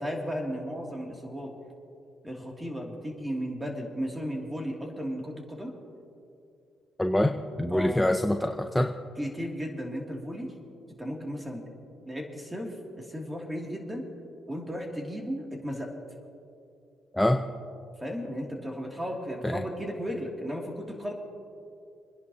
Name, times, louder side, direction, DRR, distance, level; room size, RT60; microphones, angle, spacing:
voice 1, 0.0-1.5 2.2-5.7 7.7-8.1 9.2-10.5 11.0-11.6 12.1-14.1 14.5-15.9 18.0-21.1, equal, 15° right, 0 dB, 2.5 m, -35 dB
voice 2, 7.0-8.9 17.1-17.4 19.4-19.6, left 1 dB, 5° left, 5 dB, 0.6 m, -25 dB
29.0 x 10.5 x 2.8 m, 2.5 s
cardioid pair, 90°, 0 cm